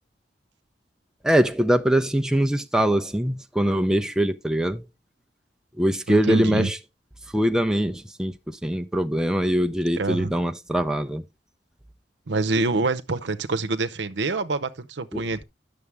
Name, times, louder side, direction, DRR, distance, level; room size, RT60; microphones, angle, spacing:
voice 1, 1.2-4.9 5.8-6.8 7.3-11.3 15.1-15.2, equal, 5° right, 0.5 m, -23 dB
voice 2, 6.1-6.7 10.0-10.3 12.3-15.4, right 3 dB, 85° right, 0.8 m, -26 dB
9.7 x 6.7 x 3.4 m
head